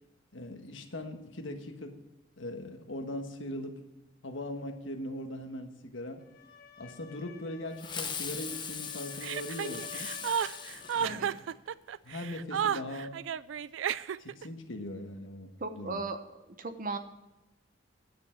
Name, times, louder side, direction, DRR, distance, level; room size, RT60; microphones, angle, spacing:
voice 1, 0.3-2.0 2.4-3.8 4.2-6.2 6.8-10.1 10.9-11.4 12.0-13.2 14.2-16.0, left 1 dB, 85° left, 5 dB, 1.4 m, -40 dB
sound 1, 6.2-11.1, left 6 dB, 50° left, 1.6 m, -51 dB
Fireworks, 7.8-11.7, left 6 dB, 25° left, 1.0 m, -40 dB
Chuckle chortle, 9.2-14.4, right 8 dB, 75° right, 0.4 m, -32 dB
voice 2, 15.6-16.2 16.6-17.0, right 3 dB, 45° right, 9 dB, 0.9 m, -36 dB
10.0 x 6.8 x 7.4 m, 0.99 s
head